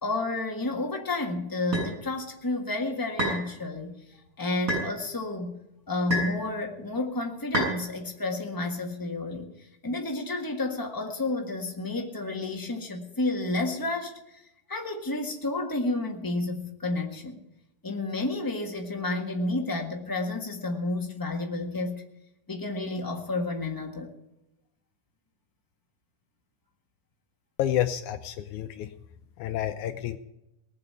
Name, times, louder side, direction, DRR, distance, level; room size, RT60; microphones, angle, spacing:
voice 1, 0.0-3.9 4.4-5.6 5.9-9.5 9.8-14.4 14.7-17.4 17.8-22.0 22.5-24.1, left 2 dB, 15° left, 2 dB, 0.6 m, -31 dB
sound 1, 1.7-1.9 3.2-3.4 4.7-4.9 6.1-6.4 7.5-7.8, right 1 dB, 25° right, 6.7 m, -27 dB
voice 2, 27.6-28.9 29.4-30.2, left 11 dB, 75° left, 9 dB, 2.0 m, -29 dB
19.5 x 6.7 x 9.5 m, 0.88 s
omnidirectional pair, 3.7 m